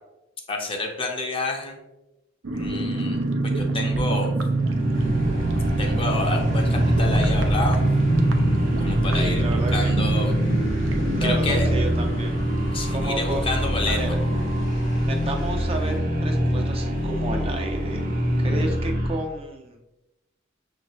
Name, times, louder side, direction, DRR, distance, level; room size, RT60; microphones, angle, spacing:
voice 1, 0.5-1.8 2.5-4.3 5.8-7.8 8.8-10.3 11.2-11.7 12.7-14.0, left 2 dB, 30° left, 2 dB, 0.7 m, -29 dB
sound 1, 2.4-14.8 15.1-15.2 15.4-15.7, right 2 dB, 85° right, 0.6 m, -26 dB
sound 2, 4.5-19.3, equal, 45° right, 0.9 m, -25 dB
sound 3, 4.9-16.0, equal, 75° left, 0.9 m, -36 dB
voice 2, 9.1-9.9 11.1-12.3 12.9-13.5 13.9-14.1 15.0-18.0 18.4-19.8, right 2 dB, 30° right, 3 dB, 0.5 m, -32 dB
6.1 x 2.6 x 3.0 m, 0.97 s
head